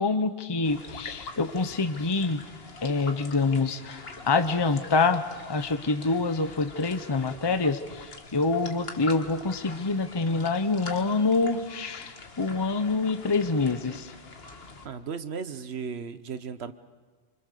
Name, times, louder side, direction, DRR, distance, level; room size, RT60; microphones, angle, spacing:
voice 1, 0.0-2.4 2.8-5.2 5.5-14.1, left 3 dB, 25° left, 9 dB, 0.9 m, -26 dB
sound 1, 0.6-14.9, left 3 dB, 70° left, 1.8 m, -44 dB
voice 2, 14.8-16.7, right 6 dB, 90° right, 11 dB, 1.3 m, -35 dB
27.0 x 25.0 x 6.8 m, 1.4 s
omnidirectional pair, 1.0 m